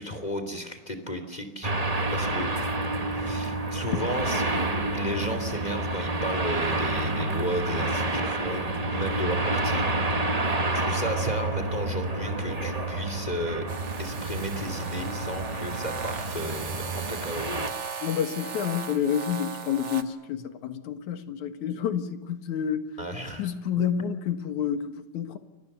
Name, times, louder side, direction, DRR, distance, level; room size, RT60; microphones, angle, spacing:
voice 1, 0.0-1.7 2.1-2.5 3.0-4.4 4.9-9.8 10.7-13.6 14.0-17.7 23.0-23.5, equal, 15° left, 2.7 m, -34 dB
sound 1, 1.6-17.7, right 2 dB, 25° right, 0.8 m, -29 dB
sound 2, 13.7-20.0, right 5 dB, 40° right, 1.0 m, -37 dB
voice 2, 18.0-22.9 23.4-25.4, left 8 dB, 80° left, 3.0 m, -29 dB
29.0 x 24.0 x 6.9 m
omnidirectional pair, 3.3 m